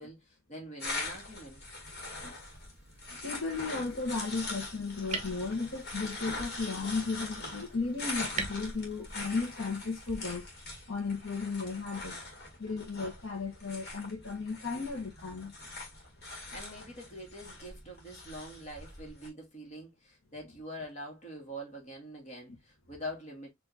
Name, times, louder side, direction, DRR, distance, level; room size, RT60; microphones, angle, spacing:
voice 1, 0.0-1.6 16.5-23.5, equal, 35° left, 1.6 m, -44 dB
sound 1, 0.8-19.3, left 2 dB, 55° left, 1.7 m, -42 dB
sound 2, 2.1-10.2, right 4 dB, 35° right, 0.9 m, -45 dB
voice 2, 3.1-10.4 10.9-12.1 12.6-15.5, left 4 dB, 80° left, 1.2 m, -35 dB
4.7 x 2.8 x 2.7 m
head